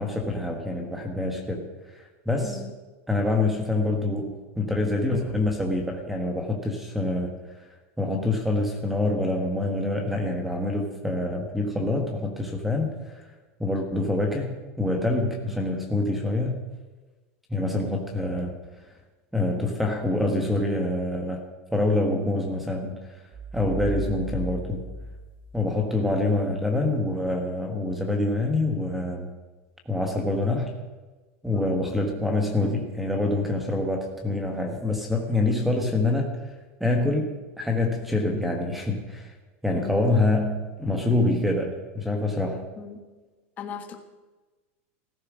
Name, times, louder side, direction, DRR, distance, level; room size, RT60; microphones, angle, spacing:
voice 1, 0.0-1.6 1.9-2.6 3.1-7.3 8.0-13.3 13.6-16.6 17.5-18.6 19.3-21.4 21.7-23.0 23.5-24.8 25.5-29.3 29.8-30.7 31.4-36.3 36.8-39.3 39.6-42.6, left 2 dB, ahead, 4 dB, 1.4 m, -26 dB
voice 2, 2.4-2.7 15.4-15.6 23.8-24.1 31.5-31.8 39.7-40.0 42.8-43.1 43.6-44.0, left 7 dB, 25° left, 4 dB, 1.6 m, -39 dB
sound 1, 23.3-26.0, right 2 dB, 30° right, 3.6 m, -35 dB
16.0 x 14.0 x 6.3 m, 1.2 s
supercardioid pair, 175°, 7 cm